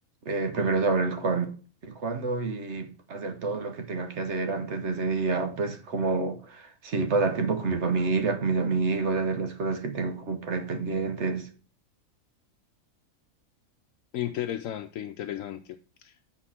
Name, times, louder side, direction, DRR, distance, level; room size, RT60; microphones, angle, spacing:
voice 1, 0.3-1.6 1.8-11.5, right 4 dB, 55° right, 1.3 m, -28 dB
voice 2, 14.1-16.3, left 12 dB, 75° left, 1.0 m, -34 dB
7.9 x 4.4 x 5.8 m
omnidirectional pair, 1.4 m